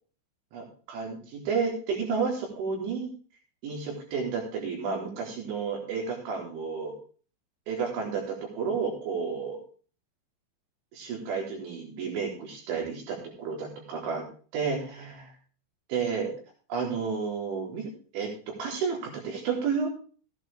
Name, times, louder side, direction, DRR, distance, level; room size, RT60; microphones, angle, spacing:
voice 1, 0.5-3.1 3.6-7.0 7.7-9.6 10.9-14.2 14.5-15.1 15.9-16.3 16.7-18.3 18.6-19.9, right 5 dB, 70° right, -1 dB, 6.0 m, -31 dB
15.5 x 10.5 x 3.5 m, 0.39 s
omnidirectional pair, 5.7 m